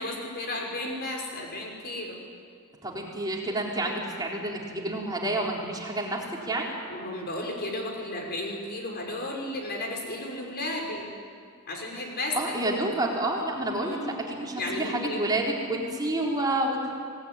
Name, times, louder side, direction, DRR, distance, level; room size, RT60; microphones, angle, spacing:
voice 1, 0.0-2.2 6.9-11.1 11.7-12.6 13.7-14.2 14.5-15.2, left 1 dB, 50° left, 0 dB, 5.8 m, -33 dB
voice 2, 2.8-6.7 12.3-16.9, right 1 dB, 20° right, -2 dB, 4.0 m, -29 dB
26.0 x 18.5 x 9.9 m, 2.1 s
head